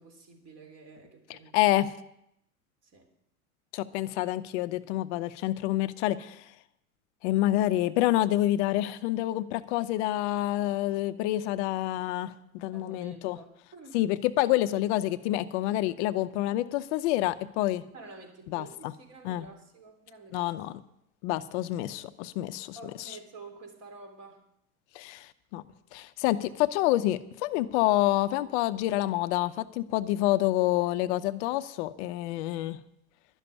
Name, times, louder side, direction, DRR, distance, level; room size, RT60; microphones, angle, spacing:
voice 1, 0.0-1.7 2.8-3.1 12.7-14.0 17.9-20.5 22.7-24.4, right 3 dB, 35° right, 4 dB, 3.4 m, -49 dB
voice 2, 1.3-1.9 3.7-6.5 7.2-13.4 13.9-17.8 18.5-18.9 19.2-19.4 20.3-20.7 21.2-22.8 23.1-23.2 24.9-25.6 25.9-32.8, left 15 dB, 50° left, 12 dB, 0.7 m, -28 dB
11.5 x 6.8 x 9.7 m, 0.78 s
hypercardioid pair, 110°, 44 cm